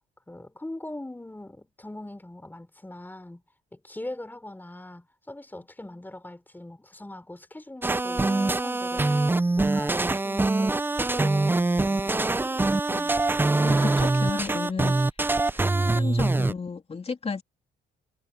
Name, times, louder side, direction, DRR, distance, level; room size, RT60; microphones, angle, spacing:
voice 1, 0.3-3.4 3.7-9.3 9.6-12.5 12.9-13.2, left 1 dB, 10° left, 4.0 m, -41 dB
sound 1, 7.8-16.5, right 2 dB, 10° right, 0.4 m, -24 dB
voice 2, 13.6-15.0 15.5-17.4, left 4 dB, 30° left, 2.8 m, -33 dB
cardioid pair, 90°, 20 cm